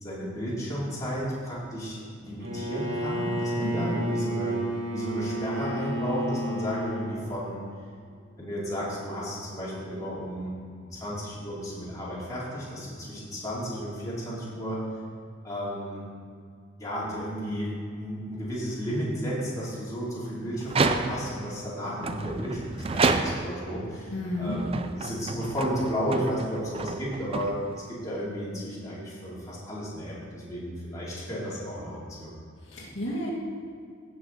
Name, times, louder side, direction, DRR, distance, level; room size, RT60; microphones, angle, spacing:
voice 1, 0.0-4.6 4.9-7.6 8.4-10.5 10.8-14.8 15.4-16.0 16.8-17.7 18.0-27.6 27.9-32.3, equal, 15° left, -8 dB, 2.6 m, -33 dB
Bowed string instrument, 2.4-7.2, right 1 dB, 55° right, 2.0 m, -31 dB
voice 2, 3.6-4.0 22.0-22.1 24.1-24.6 32.7-33.3, left 1 dB, 65° left, -5 dB, 1.9 m, -32 dB
sound 1, 20.6-21.4 22.0-23.7 24.4-27.9, right 3 dB, 30° right, 0.4 m, -29 dB
16.0 x 6.2 x 3.9 m, 2.2 s
head